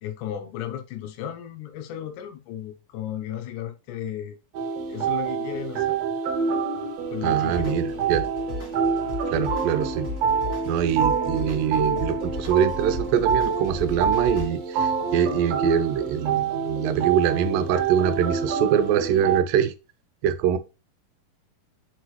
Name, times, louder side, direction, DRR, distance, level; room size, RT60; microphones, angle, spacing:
voice 1, 0.0-4.4 4.9-6.0 7.1-7.8, left 10 dB, 75° left, 2.0 m, -34 dB
sound 1, 4.5-19.4, right 6 dB, 60° right, 2.0 m, -27 dB
voice 2, 7.2-8.3 9.3-10.1 10.7-19.7 20.2-20.6, right 9 dB, 85° right, 2.4 m, -24 dB
sound 2, 7.4-14.5, left 2 dB, 15° right, 3.0 m, -36 dB
6.6 x 4.7 x 3.1 m
omnidirectional pair, 4.0 m